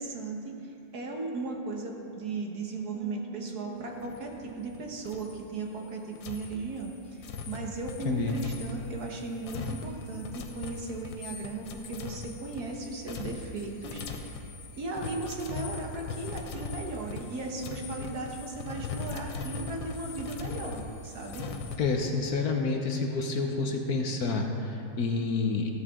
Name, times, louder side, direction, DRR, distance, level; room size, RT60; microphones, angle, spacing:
voice 1, 0.0-14.4 14.8-21.5, right 3 dB, 60° right, 1 dB, 1.7 m, -37 dB
sound 1, 2.9-6.4, right 8 dB, 20° right, 1.7 m, -48 dB
sound 2, 4.0-4.8 5.1-5.4 6.2-21.8, left 4 dB, 85° left, 1.6 m, -40 dB
voice 2, 8.0-8.4 21.8-25.7, left 4 dB, 60° left, 3 dB, 1.3 m, -29 dB
14.5 x 13.0 x 3.7 m, 2.8 s
omnidirectional pair, 2.0 m